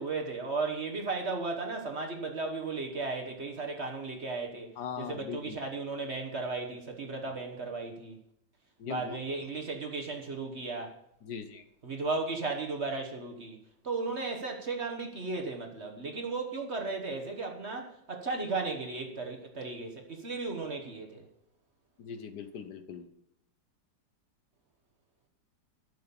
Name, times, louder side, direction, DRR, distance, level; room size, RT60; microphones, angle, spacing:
voice 1, 0.0-4.7 5.0-8.2 8.9-10.9 11.8-13.6 13.8-21.2, right 3 dB, 40° right, 1.3 m, -35 dB
voice 2, 4.8-5.6 8.8-9.2 11.2-11.6 22.0-23.1, left 7 dB, 65° left, 1.4 m, -40 dB
12.0 x 6.9 x 7.1 m
omnidirectional pair, 2.0 m